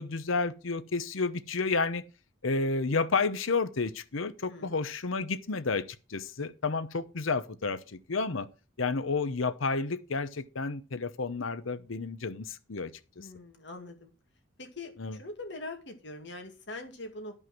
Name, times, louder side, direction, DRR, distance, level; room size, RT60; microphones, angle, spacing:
voice 1, 0.0-2.0 2.4-8.5 8.8-13.3 15.0-15.2, left 4 dB, 80° left, 0.8 m, -31 dB
voice 2, 13.2-14.1 14.6-17.3, left 2 dB, 60° left, 2.2 m, -43 dB
13.0 x 5.5 x 6.1 m
head